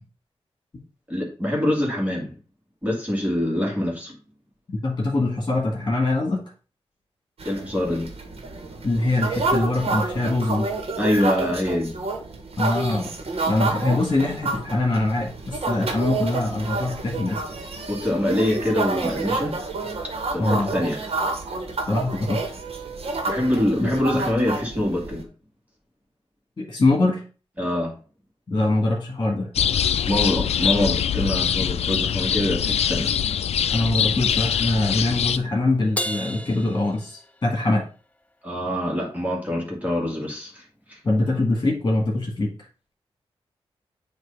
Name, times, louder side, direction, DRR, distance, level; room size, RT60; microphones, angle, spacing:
voice 1, 1.1-2.3 2.8-4.2 7.4-8.1 11.0-12.0 17.9-19.6 20.3-21.0 23.3-25.2 27.6-28.0 30.0-33.3 38.4-41.0, left 1 dB, 15° right, -2 dB, 2.1 m, -25 dB
voice 2, 4.7-6.4 8.8-10.7 12.6-13.1 13.5-17.4 20.4-20.7 21.9-22.5 23.8-24.2 26.6-27.2 28.5-29.5 33.7-37.8 41.0-42.7, left 2 dB, 35° left, -1 dB, 1.9 m, -23 dB
sound 1, 7.4-25.2, right 3 dB, 70° right, 1.5 m, -29 dB
sound 2, 29.5-35.4, left 9 dB, 85° left, 0.4 m, -23 dB
Crash cymbal, 36.0-37.7, equal, 15° left, 0.5 m, -32 dB
7.8 x 2.8 x 5.4 m, 0.37 s
wide cardioid pair, 105°, 10 cm